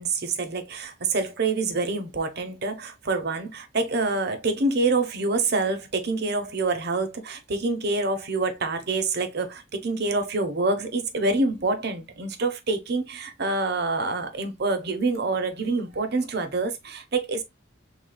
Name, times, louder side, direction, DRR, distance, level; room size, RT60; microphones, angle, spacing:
voice 1, 0.0-17.4, right 3 dB, 55° right, 0.9 m, -26 dB
5.0 x 3.6 x 2.2 m
head